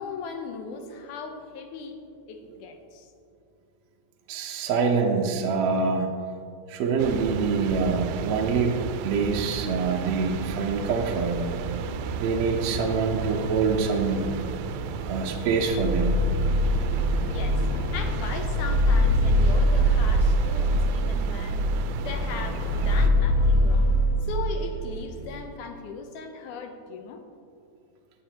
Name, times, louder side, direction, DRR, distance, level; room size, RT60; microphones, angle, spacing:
voice 1, 0.0-3.1 17.3-17.7 17.9-21.7 22.0-23.9 24.2-27.2, left 4 dB, 85° left, 5 dB, 2.4 m, -38 dB
voice 2, 4.3-6.1 6.7-8.8 9.0-11.5 12.2-14.3 15.1-16.2, right 4 dB, 65° right, 1 dB, 1.9 m, -25 dB
Flamborough ambience, 7.0-23.1, right 7 dB, 85° right, 2.0 m, -34 dB
sound 1, 10.7-11.1 11.4-25.4, equal, 60° left, 1.6 m, -25 dB
17.0 x 9.0 x 2.9 m, 2.4 s
omnidirectional pair, 3.5 m